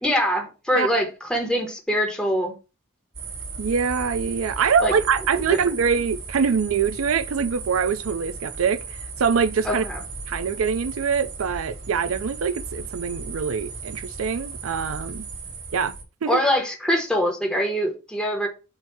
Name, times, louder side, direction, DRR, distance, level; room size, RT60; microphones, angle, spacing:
voice 1, 0.0-2.5 4.8-4.9 9.6-10.0 16.3-18.5, equal, 5° left, 1.3 m, -23 dB
sound 1, 3.1-16.0, right 4 dB, 60° right, 3.7 m, -36 dB
voice 2, 3.6-9.8 10.3-15.3 15.7-15.9 16.2-16.4, right 6 dB, 85° right, 0.4 m, -24 dB
7.9 x 2.7 x 6.0 m
head